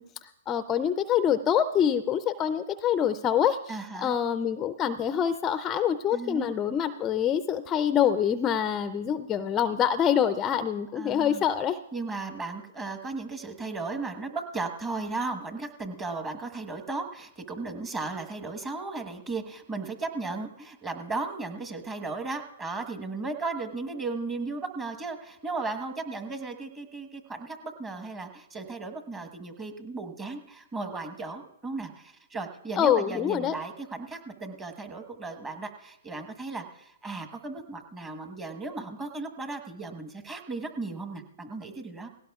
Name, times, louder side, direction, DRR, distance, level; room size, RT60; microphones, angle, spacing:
voice 1, 0.0-11.8 32.8-33.5, left 9 dB, 20° left, 11 dB, 0.4 m, -26 dB
voice 2, 3.7-4.1 6.1-6.5 10.9-11.4 11.9-42.1, right 3 dB, 15° right, 6 dB, 1.2 m, -36 dB
18.5 x 17.0 x 2.4 m, 0.83 s
hypercardioid pair, 140°, 0 cm